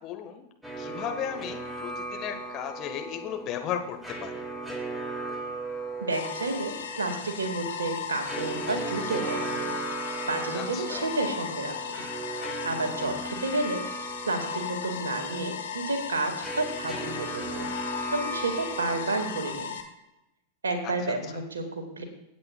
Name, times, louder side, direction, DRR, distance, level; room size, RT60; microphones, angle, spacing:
voice 1, 0.0-0.4 0.8-4.3 10.5-11.1 20.8-20.9, left 9 dB, 35° left, 5 dB, 1.5 m, -35 dB
sound 1, 0.6-19.5, right 2 dB, 5° right, 2.0 m, -37 dB
voice 2, 6.0-9.7 10.3-11.8 12.6-13.8 14.3-17.7 18.1-19.8 20.6-22.0, right 2 dB, 70° right, 5 dB, 2.0 m, -31 dB
sound 2, 6.1-19.8, left 7 dB, 65° left, 1.4 m, -37 dB
24.5 x 8.6 x 2.4 m, 0.89 s
figure-of-eight pair, 90°, 0 cm